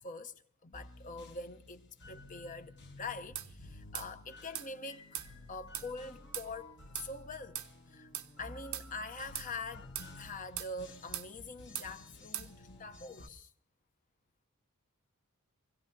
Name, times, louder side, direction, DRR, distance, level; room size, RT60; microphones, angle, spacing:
voice 1, 0.0-5.2 5.5-7.6 7.9-8.1 8.4-13.5, left 3 dB, 35° left, 0.8 m, -44 dB
sound 1, 0.7-13.3, left 2 dB, 55° left, 1.5 m, -53 dB
sound 2, 3.4-3.5 4.0-4.1 4.6-4.7 5.1-5.3 5.7-5.9 6.3-6.5 7.0-7.1 7.6-7.7 8.1-8.3 8.7-8.9 9.4-9.5 10.0-10.1 10.6-10.7 11.1-11.3 11.8-11.9 12.3-12.5, right 12 dB, 70° right, 0.8 m, -40 dB
24.5 x 16.5 x 2.7 m
head